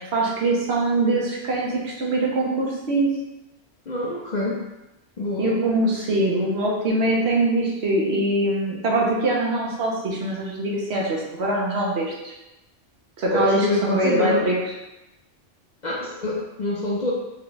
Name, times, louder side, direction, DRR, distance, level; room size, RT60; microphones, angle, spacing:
voice 1, 0.0-3.1 5.4-12.3 13.2-14.5, right 2 dB, 65° right, -3 dB, 1.1 m, -23 dB
voice 2, 3.9-4.6 5.2-5.5 13.3-14.5 15.8-17.1, left 1 dB, 50° left, -5 dB, 0.6 m, -25 dB
4.3 x 2.3 x 3.9 m, 0.98 s
omnidirectional pair, 1.2 m